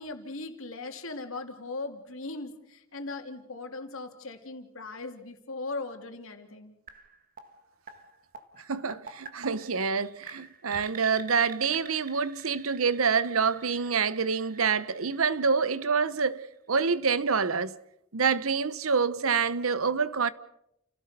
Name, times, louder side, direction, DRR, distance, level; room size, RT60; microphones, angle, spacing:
voice 1, 0.0-6.7, left 3 dB, 70° left, 2.8 m, -39 dB
sound 1, 6.9-16.7, right 5 dB, 40° right, 1.8 m, -49 dB
voice 2, 8.7-16.4 16.7-17.8 18.1-20.3, right 5 dB, 80° right, 0.9 m, -27 dB
29.5 x 16.5 x 6.8 m
head